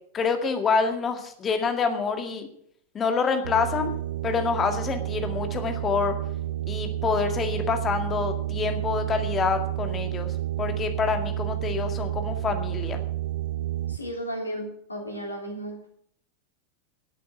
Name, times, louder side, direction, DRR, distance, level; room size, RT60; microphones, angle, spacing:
voice 1, 0.1-2.5 2.9-3.9 4.2-6.1 6.7-10.3 10.6-13.0, left 5 dB, 25° left, 6 dB, 2.0 m, -27 dB
sound 1, 3.4-14.0, right 13 dB, 60° right, 0.5 m, -30 dB
voice 2, 13.9-16.0, equal, 80° left, 2 dB, 3.3 m, -34 dB
11.5 x 8.3 x 7.8 m, 0.65 s
figure-of-eight pair, 90°, 0 cm